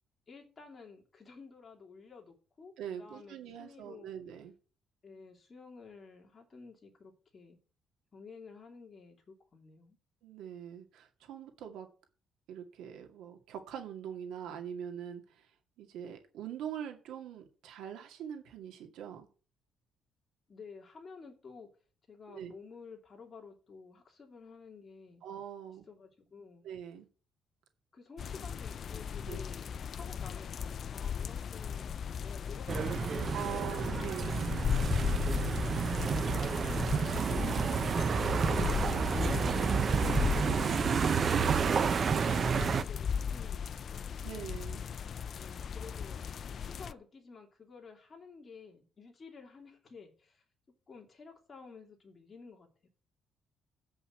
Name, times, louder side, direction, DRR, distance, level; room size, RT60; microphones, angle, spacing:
voice 1, 0.3-2.7 3.0-4.1 5.0-7.6 8.1-10.0 20.5-21.7 22.1-25.2 25.9-26.6 27.9-32.0 32.2-33.9 34.6-37.1 38.2-38.9 39.7-41.2 41.5-44.2 45.3-46.2 46.6-50.4 50.9-52.9, left 4 dB, 30° left, 2.8 m, -52 dB
voice 2, 2.8-4.5 10.2-11.9 12.5-15.5 15.8-19.3 22.3-22.5 25.2-25.9 26.6-27.1 29.3-29.4 33.3-34.4 37.3-37.5 44.2-44.8, right 9 dB, 85° right, 2.1 m, -43 dB
sound 1, 28.2-46.9, left 7 dB, 45° left, 0.4 m, -36 dB
sound 2, 32.7-42.8, right 6 dB, 40° right, 0.5 m, -30 dB
8.2 x 5.8 x 7.8 m
cardioid pair, 135°, 0 cm